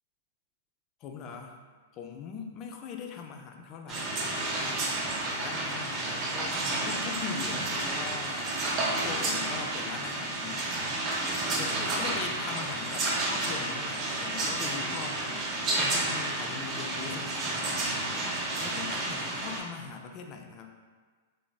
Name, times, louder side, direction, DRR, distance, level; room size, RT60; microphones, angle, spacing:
voice 1, 1.0-1.6 1.9-4.8 5.4-8.5 8.9-10.7 11.3-15.5 15.9-17.9 18.6-20.7, left 6 dB, 35° left, 3 dB, 0.3 m, -41 dB
sound 1, 3.9-19.6, right 2 dB, 30° right, 0.6 m, -31 dB
3.3 x 2.8 x 2.2 m, 1.5 s
hypercardioid pair, 130°, 0 cm